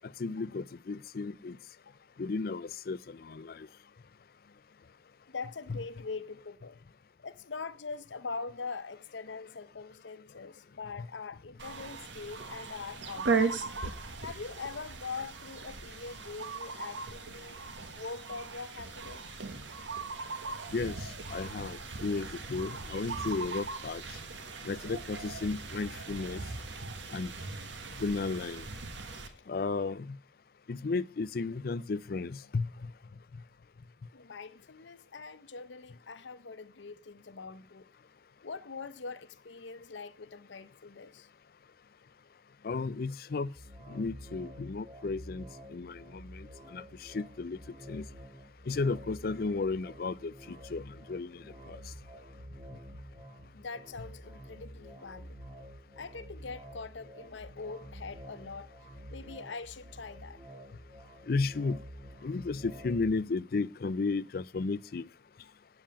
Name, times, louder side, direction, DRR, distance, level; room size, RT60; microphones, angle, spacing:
voice 1, 0.0-1.6 2.2-3.7 5.7-5.8 11.0-11.1 20.7-24.2 24.6-26.4 27.1-27.3 28.0-28.6 29.5-30.2 30.7-32.9 42.6-43.5 43.9-47.6 47.9-48.1 48.7-51.9 61.3-61.8 62.2-65.1, left 3 dB, 55° left, 0.4 m, -34 dB
voice 2, 5.3-6.8 7.2-13.6 14.2-17.6 17.9-19.2 29.3-29.5 34.1-37.9 38.4-41.3 53.5-55.4 56.0-58.7 59.1-60.4, left 4 dB, 85° left, 0.7 m, -43 dB
sound 1, 11.6-29.3, right 4 dB, 85° right, 1.4 m, -38 dB
sound 2, 43.5-63.2, equal, 30° right, 2.0 m, -49 dB
8.8 x 7.5 x 8.5 m
head